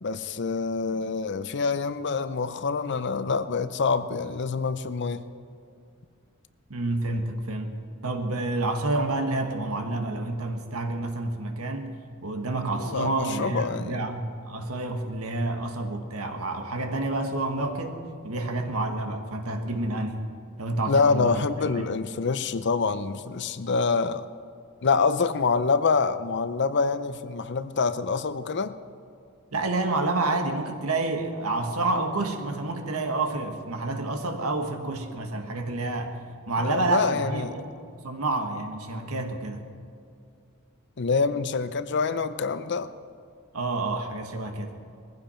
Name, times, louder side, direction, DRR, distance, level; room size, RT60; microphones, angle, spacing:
voice 1, 0.0-5.2 12.8-14.1 20.9-24.2 24.8-28.7 36.6-37.6 41.0-42.9, left 4 dB, 55° left, 13 dB, 0.6 m, -26 dB
voice 2, 6.7-7.7 8.0-12.0 12.2-20.2 20.6-21.9 29.5-36.2 36.5-37.7 38.0-39.6 43.5-44.7, right 2 dB, 85° right, 5 dB, 1.6 m, -29 dB
20.5 x 15.5 x 4.4 m, 2.4 s
head